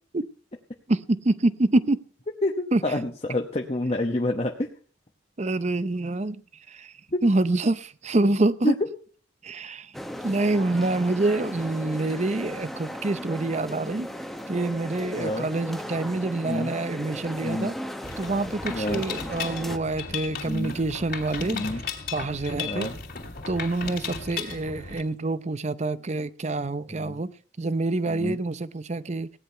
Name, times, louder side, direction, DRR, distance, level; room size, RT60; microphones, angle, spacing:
voice 1, 0.9-2.0 2.7-2.8 5.4-6.4 6.7-6.9 7.2-8.8 9.4-9.9 10.2-14.1 14.5-17.8 18.2-21.7 22.1-22.9 23.5-27.3 27.6-29.3, right 2 dB, 35° right, 0.6 m, -26 dB
voice 2, 2.4-4.7 7.1-7.2 8.6-8.7 15.2-15.5 16.4-16.7 17.4-17.7 18.7-19.0 20.5-20.7 21.5-21.8 22.6-22.9 26.9-27.2 28.1-28.4, left 1 dB, 30° left, 1.0 m, -28 dB
sound 1, 9.9-19.8, equal, ahead, 0.9 m, -37 dB
Mechanisms, 18.0-25.0, left 5 dB, 50° left, 3.0 m, -36 dB
17.0 x 10.0 x 5.6 m
head